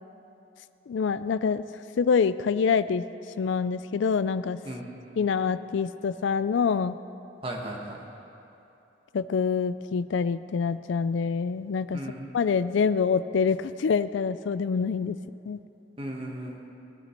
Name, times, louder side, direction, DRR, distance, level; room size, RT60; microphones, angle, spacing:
voice 1, 0.9-1.6 2.0-3.0 3.4-4.6 5.2-7.0 9.1-12.0 12.3-15.2 15.5-15.6, left 5 dB, 75° left, 14 dB, 0.4 m, -26 dB
voice 2, 7.4-8.0 11.9-12.3 16.0-16.6, right 1 dB, 30° right, 0 dB, 1.3 m, -36 dB
19.0 x 10.0 x 4.5 m, 2.9 s
head